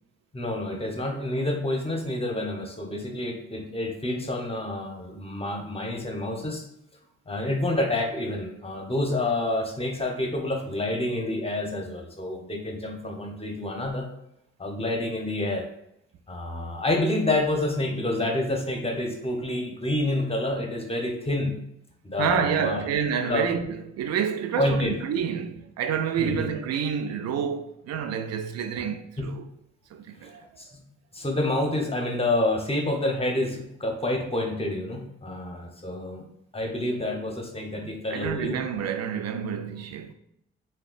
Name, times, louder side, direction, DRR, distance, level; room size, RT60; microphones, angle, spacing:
voice 1, 0.3-6.6 7.3-14.1 14.6-15.6 16.3-21.5 22.0-22.9 23.3-23.4 24.6-24.9 26.2-26.5 29.2-29.3 30.2-30.7 31.1-36.2 36.5-38.6, left 1 dB, 20° left, 0.7 m, -28 dB
voice 2, 22.2-29.4 29.9-30.4 37.7-40.1, right 7 dB, 60° right, 0.4 m, -28 dB
3.5 x 2.2 x 2.3 m
supercardioid pair, 45°, 29 cm